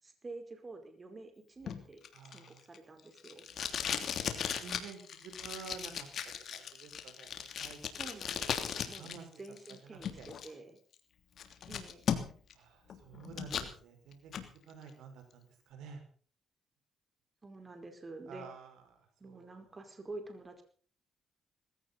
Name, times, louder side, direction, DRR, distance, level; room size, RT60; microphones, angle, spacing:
voice 1, 0.0-2.0 2.3-3.5 8.0-9.1 9.4-10.8 11.7-12.0 17.4-18.5 19.2-20.6, right 2 dB, 30° right, 6 dB, 4.8 m, -48 dB
Packing tape duct tape, 1.7-9.2 9.4-10.5 10.9-11.0 11.4-12.5 12.9-13.7 14.1-14.5, left 8 dB, 60° left, 3.1 m, -37 dB
voice 2, 2.1-2.6 3.8-6.1 6.5-8.2 9.0-9.3 9.8-10.3 12.5-14.3 14.7-16.0 18.3-18.7 19.2-19.5, right 6 dB, 85° right, 6 dB, 5.6 m, -50 dB
19.5 x 16.5 x 4.1 m, 0.44 s
cardioid pair, 90°, 0 cm